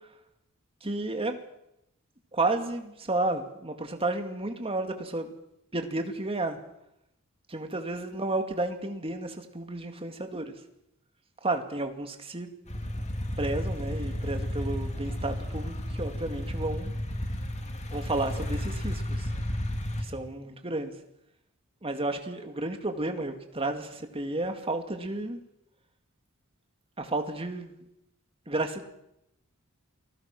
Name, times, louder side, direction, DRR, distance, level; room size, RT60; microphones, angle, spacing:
voice 1, 0.8-1.4 2.3-5.3 5.7-6.6 7.5-10.6 11.4-12.5 13.4-16.9 17.9-19.3 20.0-20.9 21.8-25.4 27.0-27.9 28.5-28.8, right 2 dB, 25° right, 6 dB, 2.3 m, -32 dB
sound 1, 12.7-20.0, left 1 dB, 30° left, 2.6 m, -32 dB
28.5 x 19.5 x 6.1 m, 0.81 s
head